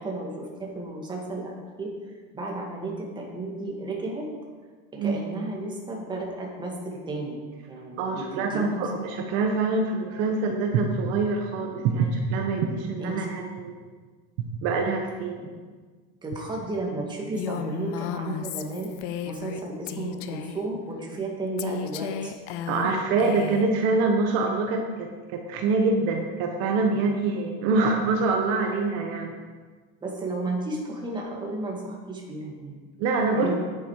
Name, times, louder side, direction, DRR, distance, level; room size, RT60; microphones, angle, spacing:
voice 1, 0.0-1.9 2.3-4.3 4.9-7.4 7.7-8.9 13.0-13.3 16.2-22.4 22.8-22.9 26.8-27.1 30.0-32.8 33.3-33.5, right 2 dB, 15° right, -1 dB, 2.0 m, -33 dB
voice 2, 8.0-13.8 14.6-15.3 22.7-29.3 33.0-33.5, right 3 dB, 55° right, 2 dB, 1.2 m, -25 dB
Female speech woman speaking, 17.4-19.6 19.9-20.6 21.6-23.7, left 8 dB, 55° left, 0.7 m, -34 dB
9.9 x 8.3 x 4.8 m, 1.5 s
supercardioid pair, 145°, 30 cm